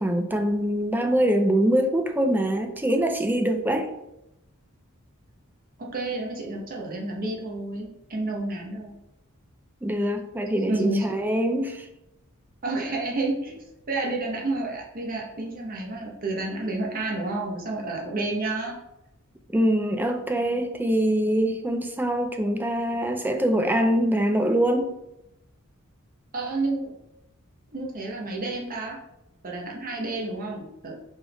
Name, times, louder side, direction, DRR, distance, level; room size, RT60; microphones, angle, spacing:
voice 1, 0.0-3.9 9.8-11.9 19.5-24.9, right 1 dB, 10° right, 6 dB, 0.4 m, -24 dB
voice 2, 5.8-8.9 10.7-11.1 12.6-13.6 13.9-18.7 26.3-26.9 27.7-29.0 29.4-31.0, right 2 dB, 40° right, -1 dB, 0.9 m, -30 dB
4.3 x 3.4 x 3.4 m, 0.88 s
head